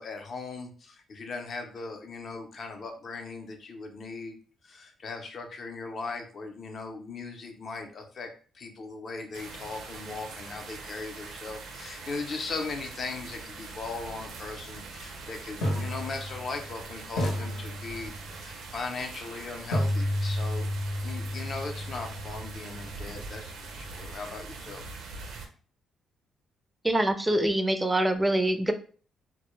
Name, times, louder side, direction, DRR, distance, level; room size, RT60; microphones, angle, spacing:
voice 1, 0.0-4.4 4.6-8.3 8.5-20.7 21.0-24.8, left 4 dB, 50° left, 4 dB, 0.5 m, -38 dB
sound 1, 9.3-25.5, right 4 dB, 80° right, 0.5 m, -43 dB
sound 2, 14.6-14.7 15.6-16.8 17.2-18.4 19.7-23.6, left 1 dB, 90° left, 0.7 m, -32 dB
voice 2, 26.8-28.7, right 1 dB, 15° right, 9 dB, 0.3 m, -24 dB
2.1 x 2.1 x 3.0 m, 0.42 s
cardioid pair, 90°, 0 cm